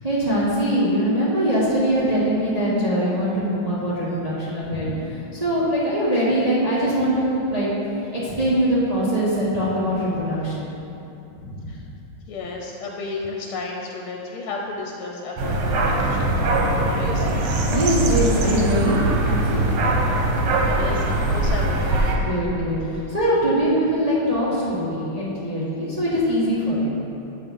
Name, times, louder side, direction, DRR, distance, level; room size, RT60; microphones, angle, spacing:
voice 1, 0.0-4.9 5.3-7.7 8.2-10.7 11.4-11.8 17.7-19.8 22.1-26.9, equal, 25° right, -9 dB, 0.9 m, -22 dB
voice 2, 4.7-5.2 11.7-11.8 12.3-16.5 16.8-17.4 19.5-19.6 20.7-22.1, left 3 dB, 85° left, 0 dB, 1.6 m, -33 dB
sound 1, 15.4-22.1, right 2 dB, 90° right, 1.8 m, -21 dB
7.6 x 4.6 x 5.4 m, 2.9 s
omnidirectional pair, 2.3 m